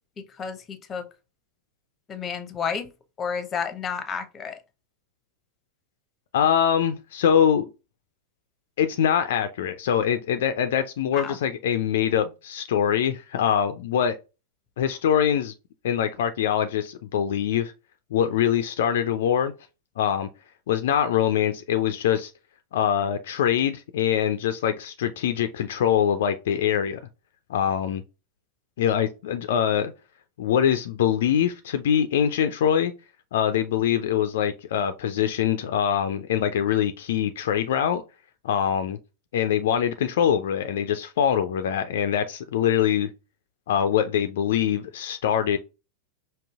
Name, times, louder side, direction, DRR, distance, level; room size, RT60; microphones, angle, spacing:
voice 1, 0.2-1.1 2.1-2.9 3.2-4.6 11.1-11.4, left 6 dB, 20° left, 0.6 m, -31 dB
voice 2, 6.3-7.7 8.8-14.2 14.8-15.5 15.8-17.7 18.1-19.5 20.0-20.3 20.7-22.3 22.7-27.0 27.5-28.0 28.8-29.9 30.4-32.9 33.3-38.0 38.4-39.0 39.3-43.1 43.7-45.6, left 9 dB, 55° left, 0.3 m, -23 dB
5.2 x 2.7 x 2.3 m
figure-of-eight pair, 90°, 0 cm